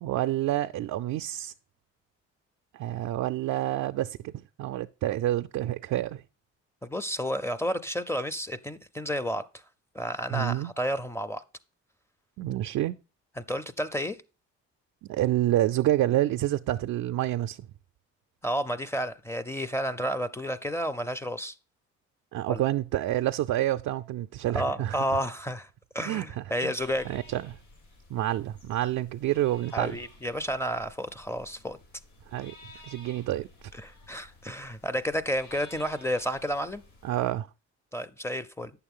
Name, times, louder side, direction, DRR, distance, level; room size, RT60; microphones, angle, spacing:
voice 1, 0.0-1.5 2.7-4.3 4.6-6.2 10.3-10.7 12.4-13.0 15.1-17.6 22.3-25.0 26.1-26.2 26.6-26.7 27.1-27.6 28.1-30.0 32.3-32.5 32.9-33.5 37.0-37.5, right 14 dB, 70° right, 0.4 m, -28 dB
voice 2, 6.8-9.6 9.9-11.4 13.4-14.2 18.4-21.5 22.5-22.6 24.5-25.7 25.9-27.2 29.7-31.8 33.7-36.8 37.9-38.7, equal, 10° left, 0.6 m, -31 dB
sound 1, 26.8-37.3, left 2 dB, 75° left, 4.7 m, -53 dB
8.8 x 7.0 x 3.6 m
cardioid pair, 90°, 30 cm